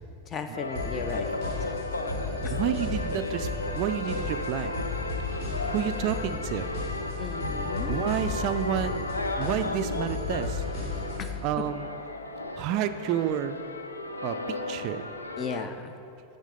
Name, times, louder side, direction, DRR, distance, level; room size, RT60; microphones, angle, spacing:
voice 1, 0.3-1.3 1.6-1.7 2.4-2.6 7.2-8.0 11.2-11.3 15.4-16.0, left 5 dB, 25° left, 8 dB, 0.5 m, -36 dB
sound 1, 0.5-15.6, left 2 dB, 80° left, 0.4 m, -35 dB
sound 2, 0.7-11.4, left 3 dB, 55° left, 2.0 m, -34 dB
voice 2, 2.5-4.7 5.7-6.7 7.9-9.0 9.4-10.6 11.4-12.0 12.5-13.6 14.2-15.1, right 10 dB, 40° right, 10 dB, 0.3 m, -30 dB
11.0 x 3.7 x 5.2 m, 2.7 s
figure-of-eight pair, 90°, 0 cm